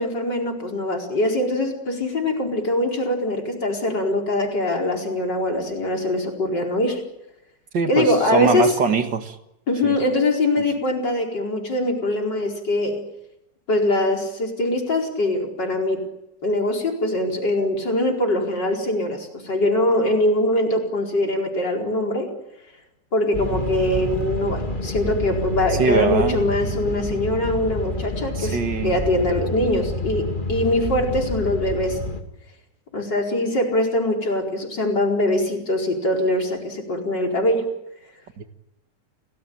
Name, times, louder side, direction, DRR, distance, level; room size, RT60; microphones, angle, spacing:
voice 1, 0.0-7.0 7.9-8.7 9.7-13.0 13.7-16.0 16.4-22.3 23.1-28.6 28.8-32.0 32.9-37.6, left 1 dB, 80° left, 1 dB, 5.3 m, -22 dB
voice 2, 7.7-9.4 9.8-10.0 25.7-26.4 28.4-29.0 38.4-38.5, right 5 dB, 80° right, 7 dB, 2.5 m, -22 dB
sound 1, 23.3-32.2, left 1 dB, 25° left, 2.5 m, -28 dB
29.5 x 19.0 x 8.9 m, 0.89 s
omnidirectional pair, 1.9 m